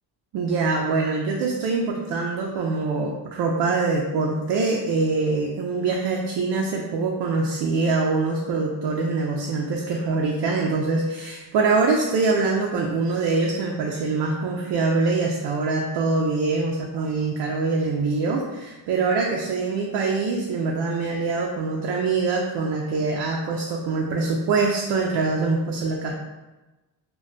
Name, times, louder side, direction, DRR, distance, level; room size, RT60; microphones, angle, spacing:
voice 1, 0.3-26.1, right 3 dB, 65° right, 0 dB, 0.5 m, -24 dB
2.2 x 2.2 x 3.8 m, 1.1 s
cardioid pair, 100°, 44 cm